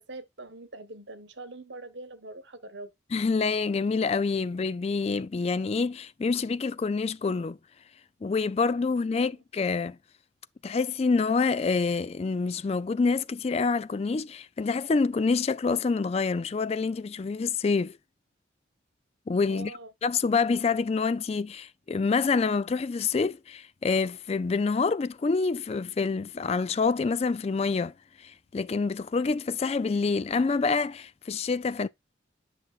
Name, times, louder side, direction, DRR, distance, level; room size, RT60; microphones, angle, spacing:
voice 1, 0.0-2.9 19.5-19.9, right 2 dB, 70° right, 1.2 m, -43 dB
voice 2, 3.1-7.6 8.2-10.0 10.6-18.0 19.3-19.7 20.0-31.9, left 4 dB, 30° left, 0.3 m, -27 dB
9.7 x 6.0 x 2.4 m
head